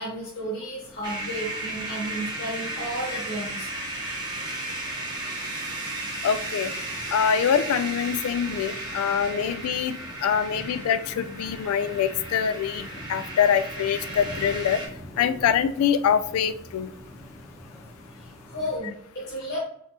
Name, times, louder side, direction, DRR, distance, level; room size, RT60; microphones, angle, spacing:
voice 1, 0.0-3.7 10.6-10.7 11.4-11.5 18.2-19.6, equal, 50° left, -6 dB, 1.3 m, -33 dB
sound 1, 0.8-18.8, equal, 15° left, 0.8 m, -46 dB
sound 2, 1.0-14.9, right 2 dB, 20° right, 0.9 m, -34 dB
voice 2, 6.2-6.7 7.1-14.8 15.2-16.9, left 8 dB, 85° left, 13 dB, 0.3 m, -24 dB
4.5 x 3.2 x 2.8 m, 0.70 s
head